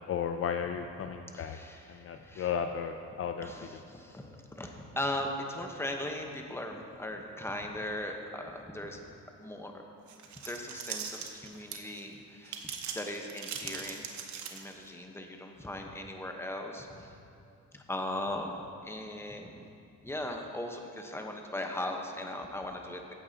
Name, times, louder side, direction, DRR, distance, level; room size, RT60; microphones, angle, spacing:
voice 1, 0.0-1.6 1.9-3.5, left 7 dB, 50° left, 6 dB, 0.5 m, -34 dB
voice 2, 1.3-2.6 3.4-9.1 9.4-9.8 10.4-17.2 17.7-19.7 20.0-23.1, left 1 dB, 10° left, 3 dB, 1.0 m, -39 dB
sound 1, 10.1-12.0 12.4-14.9, right 7 dB, 70° right, 1.0 m, -40 dB
15.5 x 8.5 x 2.9 m, 2.5 s
cardioid pair, 90°, 30 cm